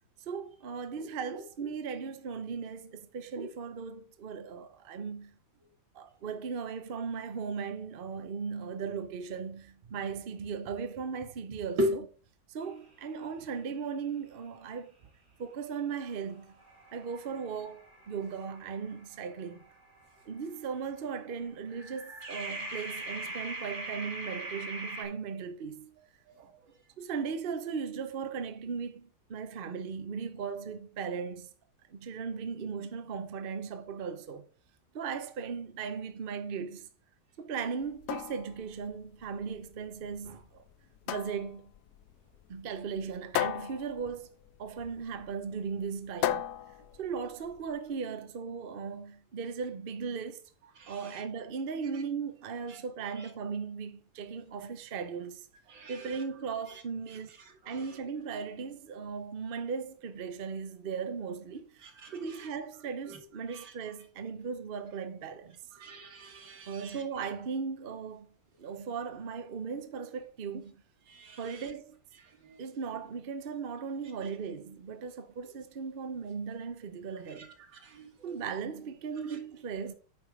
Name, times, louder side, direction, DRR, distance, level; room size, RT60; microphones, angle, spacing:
voice 1, 0.3-5.4 5.9-12.1 12.5-14.9 15.4-16.6 16.9-19.6 20.3-25.9 26.4-26.5 27.0-31.5 31.9-34.5 34.9-36.9 37.4-40.6 41.1-41.7 42.5-44.3 44.6-46.5 47.0-50.4 50.9-55.5 55.9-57.4 57.7-61.9 62.1-65.6 66.7-68.3 68.6-70.7 71.4-72.0 72.6-77.5 78.2-79.9, right 6 dB, 45° right, 0.8 m, -37 dB
sound 1, 16.0-20.6 21.7-25.0, right 2 dB, 25° right, 2.2 m, -42 dB
sound 2, 37.8-47.8, left 11 dB, 70° left, 1.0 m, -37 dB
voice 2, 55.7-56.2 62.0-62.2 65.8-66.9 71.1-71.4 77.8-78.1, equal, 90° right, 2.3 m, -35 dB
9.3 x 5.2 x 4.8 m
omnidirectional pair, 2.0 m